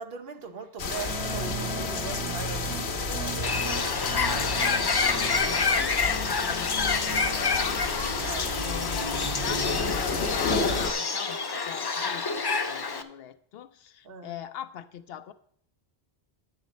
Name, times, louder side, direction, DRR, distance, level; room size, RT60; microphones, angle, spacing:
voice 1, 0.0-3.6 8.2-8.6 14.0-14.4, right 4 dB, 65° right, 1.0 m, -40 dB
sound 1, 0.8-10.9, left 4 dB, 85° left, 1.2 m, -31 dB
sound 2, 1.1-9.9, right 5 dB, 10° right, 2.5 m, -39 dB
Bird, 3.4-13.0, left 4 dB, 40° left, 0.3 m, -28 dB
voice 2, 4.6-7.8 8.6-15.3, left 10 dB, 70° left, 0.8 m, -41 dB
10.5 x 7.4 x 4.0 m
omnidirectional pair, 1.1 m